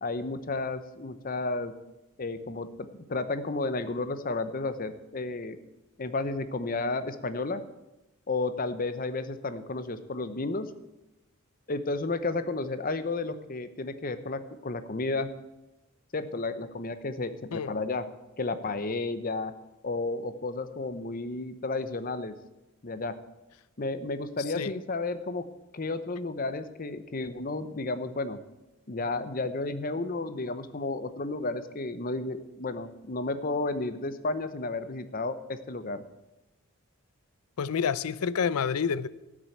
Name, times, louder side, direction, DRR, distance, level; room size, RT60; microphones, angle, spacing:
voice 1, 0.0-1.7 2.2-5.6 6.0-7.6 8.3-10.7 11.7-15.3 16.1-18.0 18.4-19.5 19.8-22.3 22.8-23.1 23.8-25.5 25.7-28.4 28.9-36.0, left 3 dB, 40° left, 0.8 m, -32 dB
voice 2, 37.6-39.1, left 6 dB, 85° left, 0.5 m, -28 dB
13.5 x 6.2 x 8.5 m
head